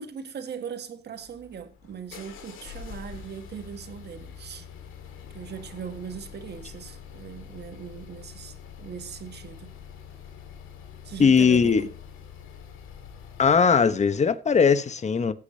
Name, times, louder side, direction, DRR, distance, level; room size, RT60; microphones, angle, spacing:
voice 1, 0.0-4.7 5.3-9.8 11.0-12.0, right 7 dB, 60° right, 1.7 m, -39 dB
sound 1, 1.2-13.7, left 7 dB, 90° left, 2.0 m, -45 dB
voice 2, 11.2-11.9 13.4-15.3, left 6 dB, 35° left, 1.1 m, -19 dB
16.5 x 8.6 x 2.8 m
cardioid pair, 90°, 20 cm